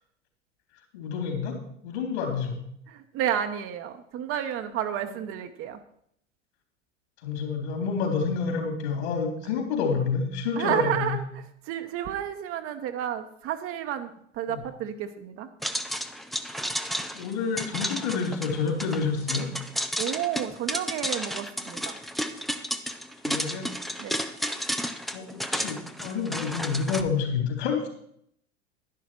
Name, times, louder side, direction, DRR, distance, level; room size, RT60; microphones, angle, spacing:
voice 1, 0.9-1.5 1.8-2.6 7.2-11.2 14.5-14.6 17.1-19.5 23.2-23.7 25.1-27.9, left 5 dB, 60° left, 3 dB, 3.8 m, -28 dB
voice 2, 2.9-5.8 10.6-15.5 20.0-22.0 24.0-24.2, right 10 dB, 35° right, 7 dB, 1.0 m, -31 dB
sound 1, 15.6-27.0, equal, ahead, 0.4 m, -32 dB
11.0 x 10.5 x 4.6 m, 0.69 s
figure-of-eight pair, 85°, 38 cm